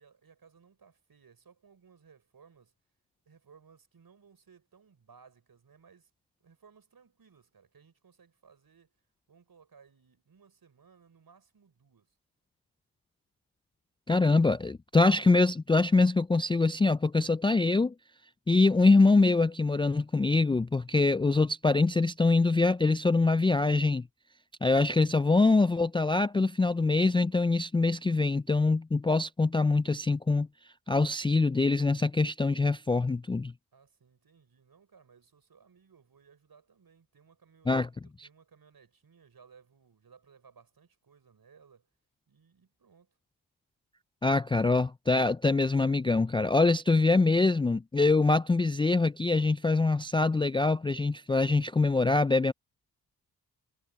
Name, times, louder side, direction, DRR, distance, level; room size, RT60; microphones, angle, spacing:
voice 1, 0.0-2.7 3.2-6.1 6.4-8.9 9.3-12.2 33.7-41.9 42.3-43.1, right 6 dB, 60° right, 6.3 m, -60 dB
voice 2, 14.1-17.9 18.5-24.1 24.6-30.5 30.9-33.5 37.7-37.9 44.2-52.5, left 3 dB, 15° left, 0.4 m, -24 dB
cardioid pair, 50°, 41 cm